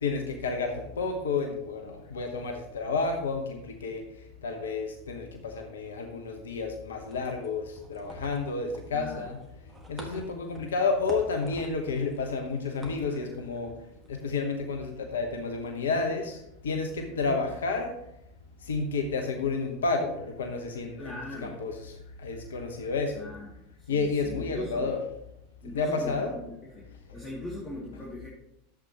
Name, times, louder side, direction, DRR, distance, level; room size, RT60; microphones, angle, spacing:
voice 1, 0.0-4.0 4.4-9.4 9.9-13.7 14.1-17.9 18.7-21.2 21.4-21.9 22.2-23.3 23.9-25.0 25.7-26.3, left 4 dB, 70° left, 4 dB, 1.1 m, -30 dB
sound 1, 7.0-14.4, right 1 dB, 15° right, 1.7 m, -48 dB
voice 2, 8.9-9.3 17.3-17.4 21.0-21.6 23.1-23.5 23.8-25.0 25.6-26.8 27.1-28.3, left 1 dB, 10° left, -5 dB, 2.5 m, -40 dB
11.5 x 7.8 x 3.0 m, 0.80 s
figure-of-eight pair, 85°, 0 cm